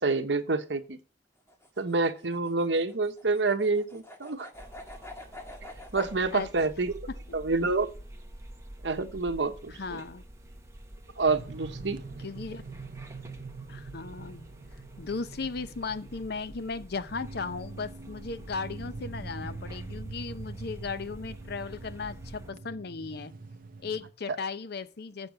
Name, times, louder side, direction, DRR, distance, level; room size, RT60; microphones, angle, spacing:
voice 1, 0.0-1.0 1.8-4.5 5.9-7.0 7.3-7.9 8.8-10.0 11.2-12.0 24.3-24.4, right 3 dB, 75° right, 1.1 m, -28 dB
sound 1, 1.4-6.1, left 1 dB, 15° left, 1.7 m, -47 dB
sound 2, 4.5-22.5, right 1 dB, 15° right, 1.2 m, -48 dB
voice 2, 9.8-10.2 12.2-12.6 13.7-14.5 15.0-23.3 23.8-25.3, left 4 dB, 60° left, 0.6 m, -36 dB
sound 3, 11.3-24.1, right 3 dB, 50° right, 0.7 m, -44 dB
7.3 x 6.7 x 6.6 m
head